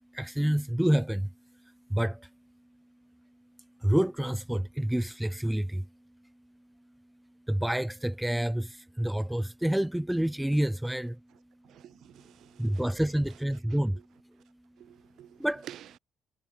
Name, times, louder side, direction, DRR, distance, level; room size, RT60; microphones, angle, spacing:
voice 1, 0.1-1.3 1.9-2.3 3.8-5.9 7.5-11.2 12.6-14.0 15.4-15.7, right 1 dB, 5° right, 0.6 m, -28 dB
voice 2, 11.6-12.9 13.3-13.4 13.7-14.0 14.8-16.0, right 12 dB, 75° right, 1.6 m, -50 dB
cardioid pair, 90°, 0 cm